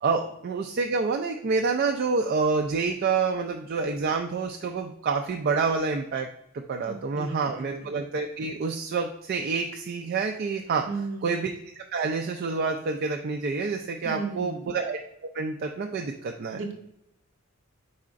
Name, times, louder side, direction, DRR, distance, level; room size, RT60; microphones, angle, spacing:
voice 1, 0.0-6.3 6.5-10.9 11.2-11.5 11.9-15.0 15.3-16.6, right 4 dB, 45° right, 3 dB, 0.3 m, -28 dB
voice 2, 6.8-7.9 10.9-11.4 14.0-14.7 16.5-16.7, right 3 dB, 65° right, 3 dB, 0.9 m, -35 dB
4.7 x 4.2 x 2.5 m, 0.79 s
head